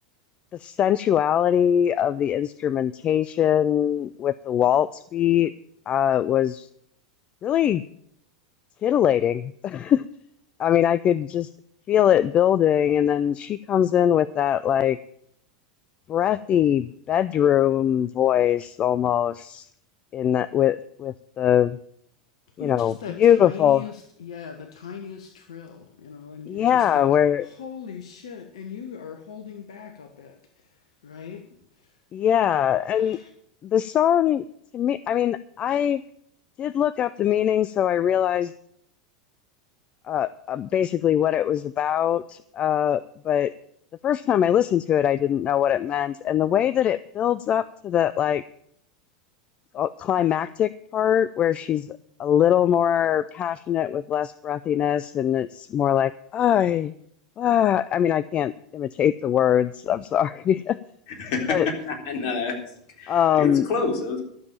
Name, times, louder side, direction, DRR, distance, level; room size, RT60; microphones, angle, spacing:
voice 1, 0.6-5.5 5.9-6.7 7.4-7.8 8.8-10.0 10.6-11.5 11.9-15.0 16.1-19.6 20.1-21.8 22.6-23.8 26.5-27.5 32.1-33.2 33.7-34.4 34.7-36.0 36.6-38.5 40.1-43.5 44.0-48.4 49.7-51.9 52.2-56.9 57.4-60.8 61.5-61.7 63.1-63.7, left 10 dB, 35° left, 16 dB, 0.4 m, -22 dB
voice 2, 22.6-27.1 27.4-30.4 31.0-31.4 32.7-33.3, left 7 dB, 65° left, 6 dB, 1.3 m, -39 dB
voice 3, 61.1-62.5 63.0-64.2, left 4 dB, 50° left, 2 dB, 3.7 m, -28 dB
12.5 x 7.4 x 8.9 m, 0.68 s
figure-of-eight pair, 85°, 3 cm